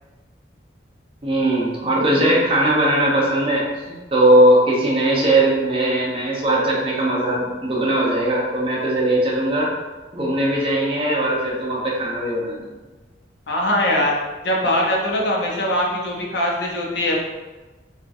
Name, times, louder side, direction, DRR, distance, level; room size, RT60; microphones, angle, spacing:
voice 1, 1.2-9.7 10.1-12.7, right 1 dB, 30° right, -4 dB, 0.7 m, -19 dB
voice 2, 13.5-14.1 14.4-17.2, left 1 dB, 70° left, -2 dB, 0.7 m, -21 dB
4.4 x 2.4 x 2.6 m, 1.2 s
head